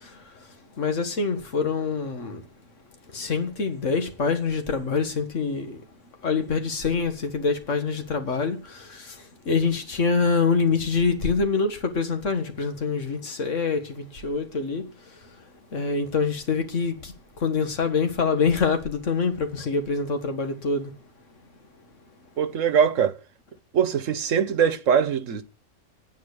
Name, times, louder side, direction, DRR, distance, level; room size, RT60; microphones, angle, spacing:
voice 1, 0.8-2.4 3.1-5.8 6.2-8.6 9.5-14.8 15.7-17.0 17.4-20.9, left 4 dB, 75° left, 1.9 m, -25 dB
voice 2, 22.4-23.1 23.7-25.4, right 7 dB, 80° right, 1.4 m, -22 dB
9.4 x 9.3 x 8.1 m
omnidirectional pair, 1.3 m